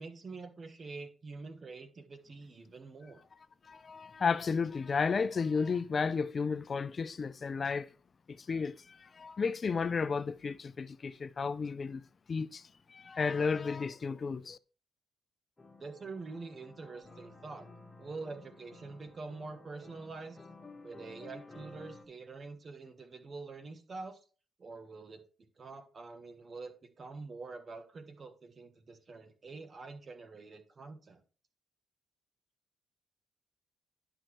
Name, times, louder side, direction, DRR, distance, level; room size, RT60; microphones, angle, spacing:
voice 1, 0.0-3.2 15.8-17.7 18.0-20.5 20.8-24.2 24.6-25.2 25.6-31.2, right 3 dB, 40° right, 1.2 m, -46 dB
voice 2, 3.6-7.9 8.3-12.0 12.3-14.6, left 5 dB, 40° left, 0.5 m, -33 dB
sound 1, 15.6-22.0, left 2 dB, 25° left, 1.7 m, -53 dB
10.5 x 6.1 x 3.2 m
cardioid pair, 90°, 0 cm